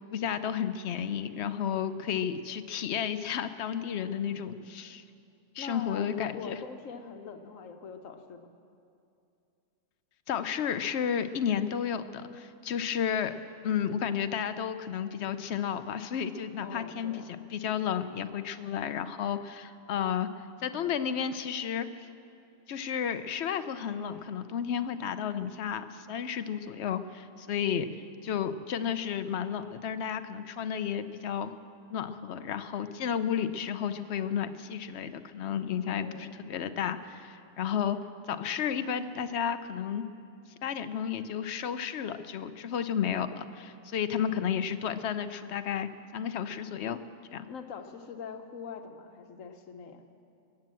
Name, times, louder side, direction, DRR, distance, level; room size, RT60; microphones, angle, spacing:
voice 1, 0.1-5.0 5.5-6.6 10.3-13.3 13.6-20.3 20.6-21.9 22.7-27.9 28.2-31.5 31.9-38.0 38.3-40.1 40.6-47.0 47.3-47.5, left 8 dB, 60° left, 11 dB, 0.9 m, -32 dB
voice 2, 4.2-4.7 5.6-8.5 16.6-17.4 35.9-36.3 44.2-44.5 47.5-50.0, left 5 dB, 80° left, 6 dB, 1.4 m, -43 dB
21.0 x 8.7 x 7.6 m, 2.5 s
omnidirectional pair, 1.4 m